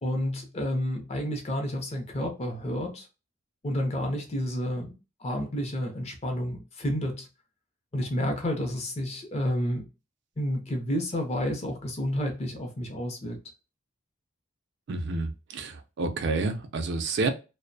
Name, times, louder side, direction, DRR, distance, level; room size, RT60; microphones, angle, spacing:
voice 1, 0.0-3.1 3.6-4.9 5.2-7.3 7.9-9.9 10.4-13.4, equal, 30° left, 0.5 m, -30 dB
voice 2, 14.9-17.3, right 3 dB, 55° right, 0.3 m, -29 dB
2.4 x 2.1 x 2.5 m
head